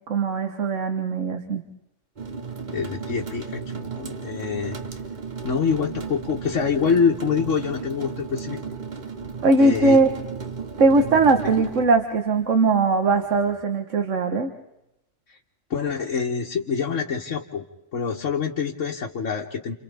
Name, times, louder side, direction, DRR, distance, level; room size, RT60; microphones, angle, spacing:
voice 1, 0.1-1.6 9.4-10.1 10.8-14.5, right 3 dB, 80° right, 6 dB, 1.6 m, -20 dB
sound 1, 2.2-13.6, right 5 dB, 40° right, 1.1 m, -35 dB
voice 2, 2.7-4.8 5.4-8.6 9.6-10.0 15.7-17.6 17.9-19.7, left 6 dB, 85° left, -1 dB, 1.6 m, -25 dB
30.0 x 29.0 x 3.5 m, 0.88 s
omnidirectional pair, 1.3 m